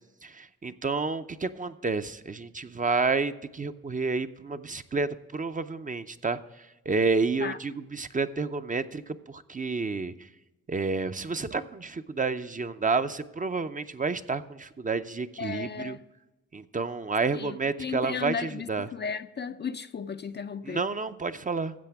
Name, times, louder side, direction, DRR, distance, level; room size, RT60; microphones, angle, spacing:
voice 1, 0.2-10.3 10.7-16.0 16.5-18.9 20.6-21.7, right 4 dB, 25° right, 0.5 m, -30 dB
voice 2, 15.4-16.0 17.3-20.9, left 6 dB, 35° left, 0.4 m, -35 dB
13.5 x 7.9 x 3.5 m
cardioid pair, 70°, 32 cm